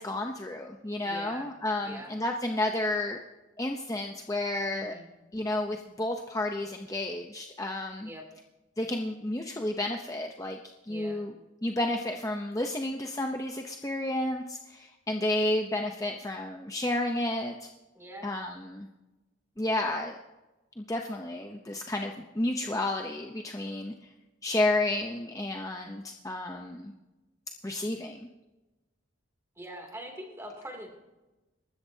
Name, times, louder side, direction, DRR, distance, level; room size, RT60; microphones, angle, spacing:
voice 1, 0.0-3.2 3.6-4.9 5.3-8.1 8.8-10.6 10.9-11.3 11.6-17.7 18.2-18.9 19.6-20.2 20.8-23.9 24.4-26.9 27.6-28.3, left 1 dB, 15° left, 2 dB, 0.7 m, -31 dB
voice 2, 1.0-1.5 1.8-2.1 4.7-5.1 8.0-8.2 10.9-11.2 17.9-18.3 29.6-30.9, equal, 15° right, 2 dB, 2.7 m, -43 dB
26.5 x 13.5 x 2.8 m, 1.1 s
head